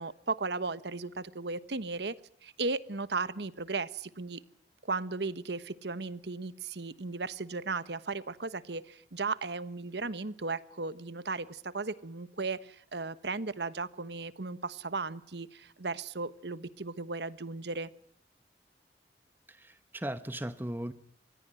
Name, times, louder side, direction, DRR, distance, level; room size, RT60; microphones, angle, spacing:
voice 1, 0.0-2.2 2.4-4.4 4.8-17.9, right 3 dB, 75° right, 16 dB, 1.2 m, -36 dB
voice 2, 19.5-20.9, right 1 dB, 10° right, 12 dB, 0.9 m, -37 dB
25.5 x 20.0 x 7.7 m, 0.64 s
head